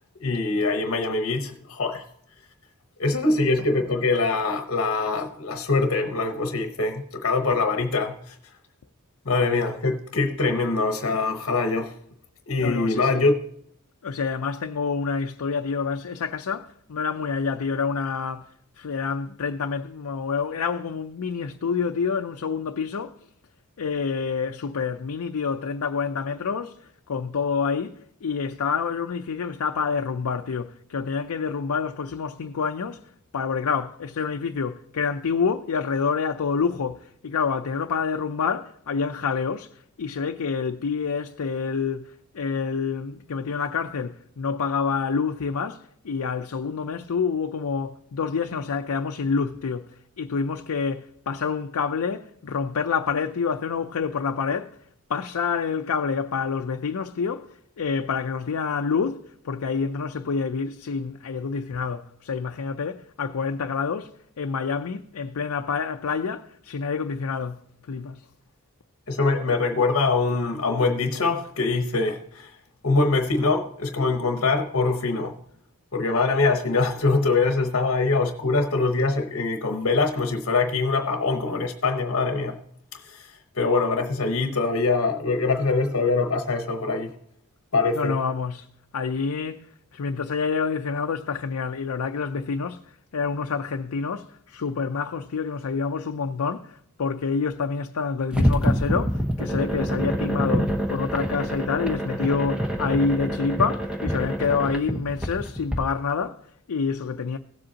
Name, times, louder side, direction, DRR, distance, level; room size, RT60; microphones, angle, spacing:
voice 1, 0.2-2.0 3.0-8.3 9.3-11.9 12.5-13.3 69.1-72.6 72.8-75.3 75.9-82.6 82.9-87.1 87.7-88.2, left 3 dB, 65° left, 1.0 m, -23 dB
voice 2, 12.6-13.3 14.0-23.3 23.8-68.3 87.9-88.7 88.9-107.4, left 5 dB, 85° left, 0.5 m, -28 dB
sound 1, 98.3-105.8, equal, 5° right, 1.1 m, -26 dB
17.0 x 7.7 x 2.8 m
head